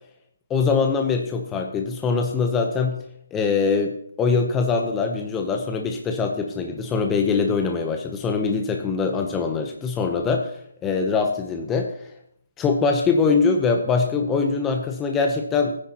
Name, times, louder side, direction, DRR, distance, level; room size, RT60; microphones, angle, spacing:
voice 1, 0.5-3.0 3.3-11.9 12.6-15.8, left 4 dB, 10° left, 3 dB, 0.7 m, -23 dB
16.5 x 9.7 x 2.9 m, 0.69 s
hypercardioid pair, 165°, 0 cm